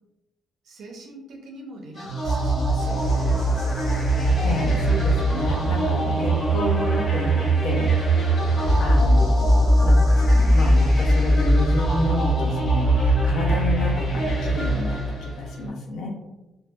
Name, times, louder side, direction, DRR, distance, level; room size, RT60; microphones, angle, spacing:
voice 1, 0.6-4.4 8.6-8.9, right 1 dB, 65° right, 0 dB, 0.5 m, -43 dB
sound 1, 2.0-15.6, right 1 dB, 35° left, 1.0 m, -20 dB
sound 2, 2.8-9.0, equal, 5° right, 0.6 m, -41 dB
voice 2, 4.4-16.1, left 1 dB, 75° left, 0 dB, 0.5 m, -30 dB
2.6 x 2.0 x 2.3 m, 1.0 s
cardioid pair, 150°, 0 cm